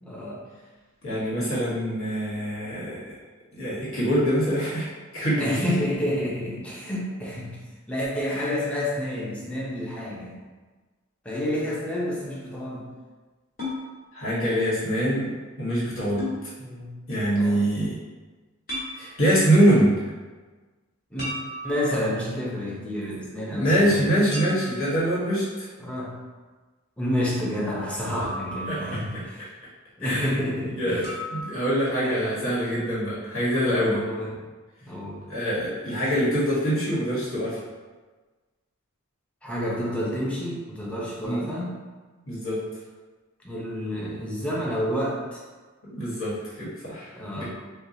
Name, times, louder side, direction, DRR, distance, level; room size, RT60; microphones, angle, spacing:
voice 1, 0.0-0.4 5.4-7.6 7.9-10.4 11.2-12.9 16.6-16.9 17.3-17.6 21.1-21.3 21.6-24.0 25.8-26.2 27.0-29.5 30.0-31.1 32.0-32.4 33.9-34.4 34.8-35.2 39.4-41.8 43.4-45.4 47.1-47.4, left 1 dB, 5° left, -6 dB, 0.7 m, -29 dB
voice 2, 1.0-3.1 3.5-4.9 5.1-5.6 8.2-8.5 14.1-16.3 17.1-18.0 19.0-19.9 23.5-25.7 28.7-29.0 29.4-29.5 30.0-30.3 30.8-34.0 35.3-37.6 41.2-41.5 42.3-42.6 45.8-47.4, equal, 75° left, -8 dB, 1.5 m, -24 dB
sound 1, 13.6-13.8 16.2-16.4 18.7-18.9 21.2-22.1 24.3-24.9 28.2-29.1 31.0-31.4, left 1 dB, 45° left, 1.5 m, -34 dB
4.5 x 2.2 x 2.7 m, 1.3 s
head